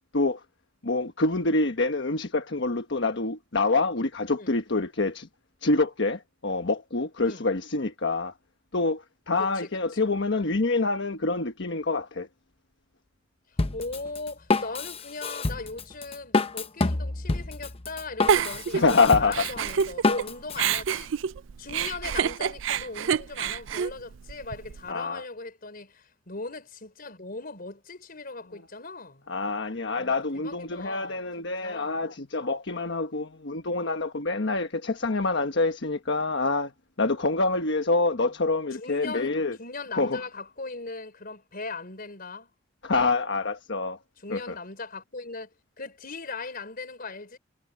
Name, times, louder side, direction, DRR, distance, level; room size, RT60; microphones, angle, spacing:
voice 1, 0.8-5.3 5.6-8.3 8.7-12.3 18.7-19.5 24.9-25.2 29.3-36.7 37.0-39.6 39.9-40.2 42.8-44.0 44.3-44.6, left 3 dB, 65° left, 1.3 m, -26 dB
voice 2, 9.4-10.0 13.7-21.1 21.6-29.3 29.9-32.0 38.2-38.3 38.7-39.3 39.6-42.5 42.9-43.1 44.2-47.4, left 3 dB, 50° left, 4.8 m, -39 dB
Drum kit, 13.6-20.8, left 3 dB, 30° left, 0.9 m, -28 dB
Giggle, 18.3-20.2 20.6-24.8, right 7 dB, 75° right, 0.4 m, -27 dB
head